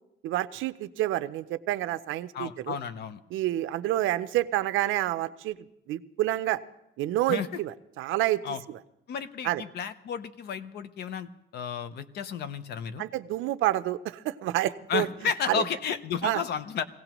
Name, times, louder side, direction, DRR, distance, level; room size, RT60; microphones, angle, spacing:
voice 1, 0.2-2.8 3.3-5.6 5.9-6.6 7.0-8.4 9.4-9.6 13.0-15.1 15.5-15.6 16.2-16.4, right 15 dB, 80° right, 12 dB, 0.6 m, -28 dB
voice 2, 2.3-3.2 7.3-7.5 8.4-8.6 9.1-13.0 14.9-16.8, left 7 dB, 55° left, 13 dB, 0.7 m, -32 dB
23.0 x 17.0 x 3.0 m, 0.86 s
cardioid pair, 175°, 20 cm